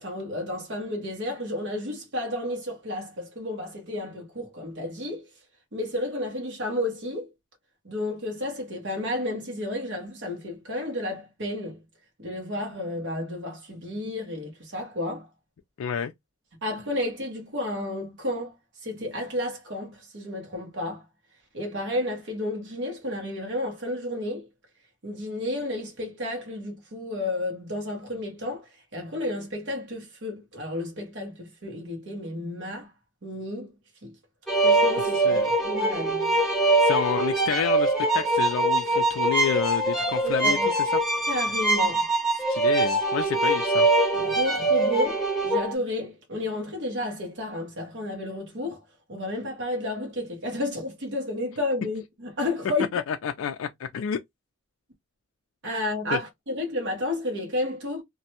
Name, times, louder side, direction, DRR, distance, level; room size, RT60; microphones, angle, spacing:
voice 1, 0.0-5.3 5.7-7.3 7.8-11.8 12.2-15.3 16.6-18.6 18.8-21.0 21.5-24.5 25.0-32.9 33.2-33.7 34.0-34.1 34.6-36.3 40.2-40.7 41.3-42.1 44.1-48.8 49.1-52.9 55.6-58.0, left 1 dB, 60° right, 1.0 m, -32 dB
voice 2, 15.8-16.1 35.0-35.5 36.8-40.6 42.5-43.9 52.9-54.2 56.1-56.2, left 7 dB, 65° left, 0.3 m, -29 dB
sound 1, 34.5-45.7, right 2 dB, ahead, 0.8 m, -23 dB
2.5 x 2.1 x 2.8 m
head